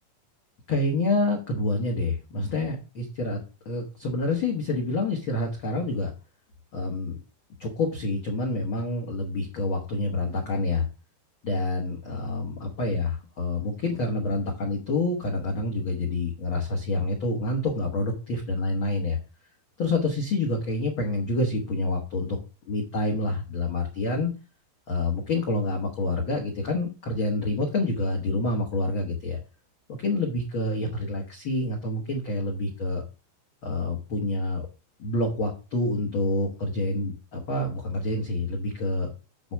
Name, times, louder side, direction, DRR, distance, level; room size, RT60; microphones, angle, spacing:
voice 1, 0.7-3.4 3.6-6.1 6.7-7.2 7.6-10.9 11.4-19.2 19.8-22.4 22.6-24.3 24.9-29.4 29.9-33.0 33.6-34.7 35.0-39.1, left 2 dB, 80° left, 1 dB, 1.1 m, -27 dB
7.9 x 4.5 x 5.8 m, 0.32 s
omnidirectional pair, 4.5 m